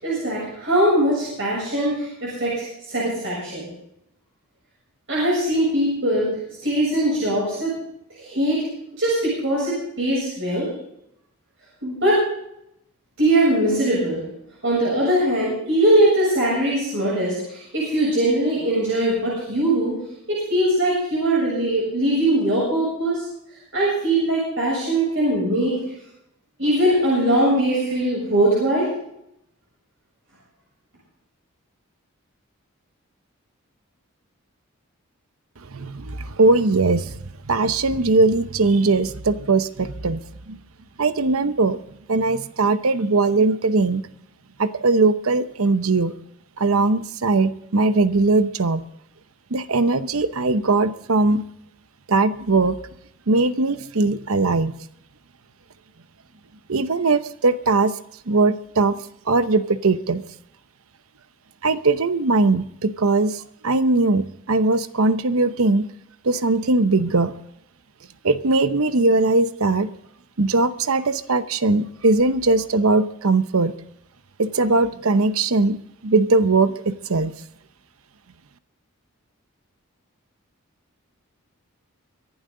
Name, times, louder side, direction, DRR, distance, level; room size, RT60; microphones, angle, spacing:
voice 1, 0.0-3.6 5.1-6.3 6.6-7.7 8.1-8.7 9.0-10.7 11.8-12.2 13.2-14.2 14.6-20.0 20.3-23.3 23.7-25.8 26.6-28.9, right 1 dB, 60° right, -5 dB, 7.3 m, -21 dB
voice 2, 35.7-37.1 37.4-40.2 40.5-40.6 41.0-41.8 42.1-44.0 44.6-46.1 46.6-48.8 49.5-51.5 52.1-52.8 53.3-54.8 56.7-57.9 58.3-58.9 59.3-60.2 61.6-65.9 66.2-67.3 68.2-69.9 70.4-73.7 74.4-75.8 76.0-77.4, right 3 dB, 80° right, 12 dB, 0.8 m, -20 dB
25.0 x 11.5 x 3.9 m, 0.78 s
head